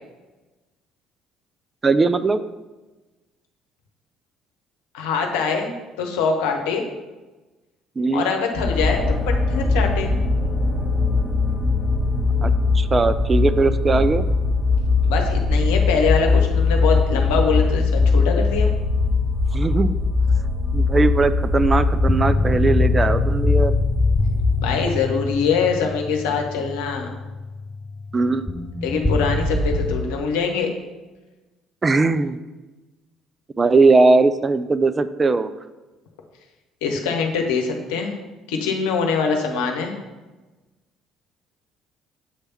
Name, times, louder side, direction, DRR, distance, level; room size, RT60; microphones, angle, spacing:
voice 1, 1.8-2.4 8.0-8.3 12.4-14.3 19.5-20.0 20.7-23.8 28.1-28.7 31.8-32.4 33.6-35.5, right 3 dB, 30° right, 13 dB, 0.4 m, -19 dB
voice 2, 4.9-6.9 8.1-10.1 15.0-18.7 24.6-27.1 28.8-30.7 36.8-38.1 38.5-39.9, left 5 dB, 75° left, 3 dB, 0.9 m, -23 dB
sound 1, 8.5-24.8, left 3 dB, 5° right, 2.2 m, -20 dB
sound 2, 21.5-29.9, left 2 dB, 15° left, 1.0 m, -26 dB
7.2 x 3.4 x 5.7 m, 1.2 s
hypercardioid pair, 55°, 0 cm